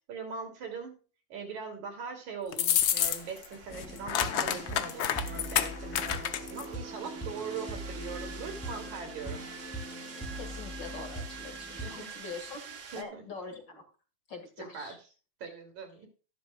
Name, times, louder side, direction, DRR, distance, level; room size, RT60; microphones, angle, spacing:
voice 1, 0.1-0.9 1.3-9.4 11.8-12.5 12.9-13.2 14.6-15.0 15.4-16.1, right 5 dB, 75° right, 4 dB, 4.2 m, -41 dB
sound 1, 2.5-3.5 3.7-6.7, left 10 dB, 75° left, 1.1 m, -29 dB
sound 2, 2.8-13.0, right 5 dB, 60° right, 0.8 m, -47 dB
sound 3, 3.7-12.0, right 1 dB, 5° left, 2.6 m, -41 dB
voice 2, 10.4-12.6 13.0-13.8 14.3-15.0, left 4 dB, 40° left, 4 dB, 2.4 m, -43 dB
13.5 x 12.0 x 2.3 m, 0.36 s
omnidirectional pair, 3.3 m